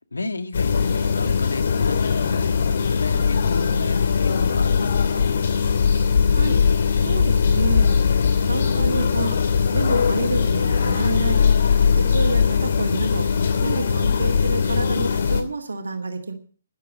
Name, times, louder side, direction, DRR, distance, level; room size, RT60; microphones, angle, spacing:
voice 1, 0.1-5.3, left 3 dB, 70° left, 1.8 m, -32 dB
sound 1, 0.5-15.4, left 6 dB, 50° left, 2.6 m, -20 dB
voice 2, 6.3-6.6 7.0-8.1 8.4-11.4 11.9-13.3 13.6-16.3, right 3 dB, 65° right, 2.3 m, -29 dB
13.0 x 11.5 x 6.4 m
figure-of-eight pair, 135°, 0 cm